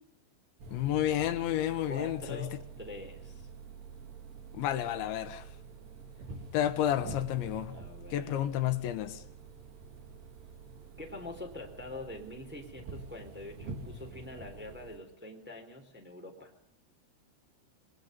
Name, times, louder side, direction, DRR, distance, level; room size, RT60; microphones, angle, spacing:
sound 1, 0.6-15.0, right 4 dB, 65° right, 5.5 m, -47 dB
voice 1, 0.7-2.5 4.5-5.5 6.5-7.8 8.1-9.2, left 12 dB, 85° left, 3.7 m, -31 dB
voice 2, 1.8-3.5 7.6-8.5 11.0-16.5, left 2 dB, 5° right, 3.2 m, -45 dB
28.0 x 23.0 x 5.4 m
omnidirectional pair, 5.1 m